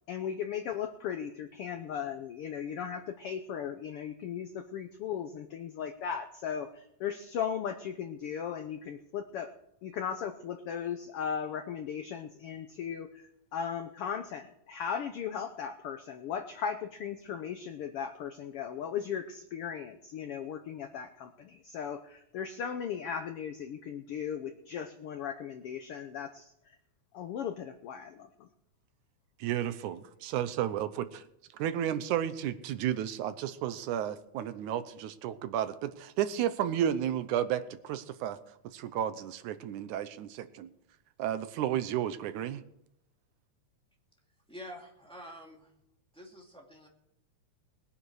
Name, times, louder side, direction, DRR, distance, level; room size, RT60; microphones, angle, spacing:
voice 1, 0.1-9.5 9.8-13.2 13.5-26.8 27.1-28.5, left 8 dB, 75° left, 7 dB, 1.3 m, -37 dB
voice 2, 29.4-31.2 31.5-38.4 38.7-40.7 41.2-42.6, right 10 dB, 80° right, 12 dB, 2.2 m, -32 dB
voice 3, 44.5-45.7 46.1-46.9, equal, ahead, -1 dB, 1.8 m, -47 dB
20.5 x 9.7 x 4.8 m, 0.78 s
omnidirectional pair, 3.5 m